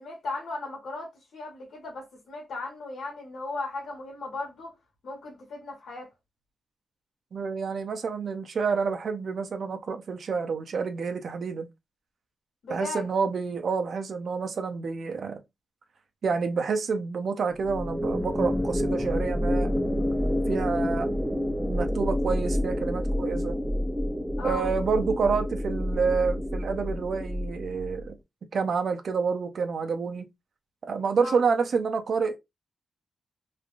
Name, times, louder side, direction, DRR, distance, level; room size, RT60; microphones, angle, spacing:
voice 1, 0.0-4.7 5.0-6.1 12.6-13.1 24.4-24.7 31.2-31.4, left 3 dB, 80° left, 1.4 m, -36 dB
voice 2, 7.3-11.7 12.7-15.4 16.2-20.1 20.5-21.1 21.7-23.6 24.4-28.1 28.5-30.3 30.9-32.4, right 5 dB, 55° right, 0.6 m, -28 dB
sound 1, 17.6-28.1, left 1 dB, ahead, 0.4 m, -28 dB
3.1 x 2.5 x 2.4 m
wide cardioid pair, 160°, 0 cm